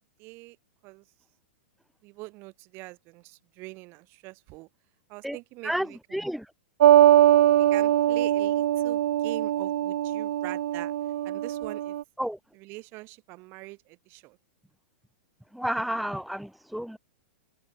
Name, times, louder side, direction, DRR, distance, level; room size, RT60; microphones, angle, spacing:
voice 1, 0.2-0.6 0.8-1.1 2.0-4.7 5.1-6.2 7.6-10.9 11.2-12.0 12.5-14.4, right 23 dB, 35° right, 3.2 m, -43 dB
voice 2, 5.6-6.5 12.2-12.4 15.5-17.0, equal, ahead, 1.3 m, -31 dB
sound 1, 6.8-12.0, right 12 dB, 75° right, 0.6 m, -22 dB
supercardioid pair, 150°, 6 cm